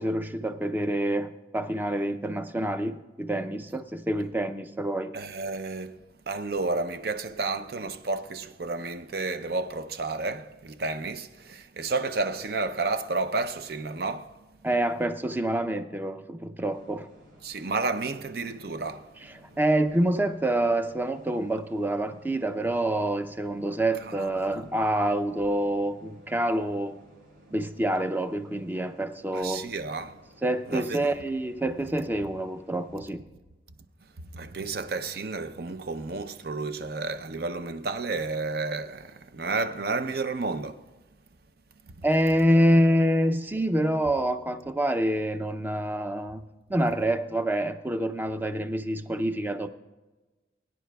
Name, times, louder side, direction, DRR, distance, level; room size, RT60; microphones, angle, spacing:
voice 1, 0.0-5.1 14.6-17.1 19.2-27.0 27.5-29.7 30.4-33.2 42.0-49.7, right 1 dB, 10° right, 0.5 m, -27 dB
voice 2, 5.1-6.0 6.3-14.4 17.4-19.1 24.1-24.6 29.3-30.2 30.7-31.1 34.3-40.8, right 3 dB, 60° right, 0.6 m, -31 dB
sound 1, 16.7-33.0, equal, 75° right, 3.9 m, -56 dB
22.0 x 10.0 x 2.3 m
head